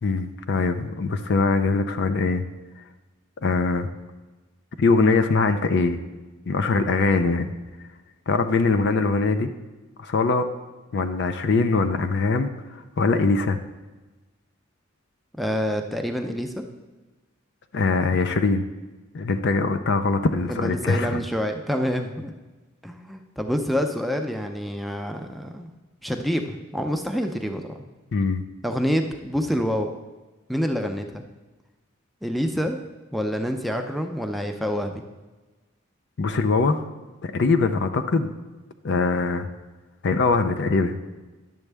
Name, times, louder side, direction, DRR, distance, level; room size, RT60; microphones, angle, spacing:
voice 1, 0.0-2.4 3.4-3.9 4.8-6.0 6.5-7.5 8.3-9.5 10.0-10.5 10.9-13.6 17.7-18.6 19.1-21.2 28.1-28.4 36.2-36.8 37.2-38.3 38.8-39.5 40.0-41.0, left 3 dB, 55° left, 9 dB, 0.5 m, -22 dB
voice 2, 15.4-16.6 20.5-22.3 22.8-25.7 26.0-27.8 28.6-29.9 30.5-31.2 32.2-32.8 33.1-35.0, equal, ahead, 5 dB, 0.5 m, -27 dB
10.5 x 7.2 x 3.4 m, 1.2 s
head